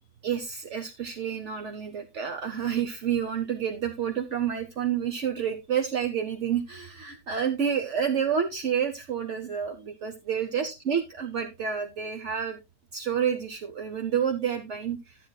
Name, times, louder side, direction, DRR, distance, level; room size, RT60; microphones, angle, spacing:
voice 1, 0.2-12.6 12.9-15.2, right 8 dB, 55° right, 6 dB, 0.8 m, -29 dB
13.0 x 7.7 x 2.2 m, 0.24 s
omnidirectional pair, 2.1 m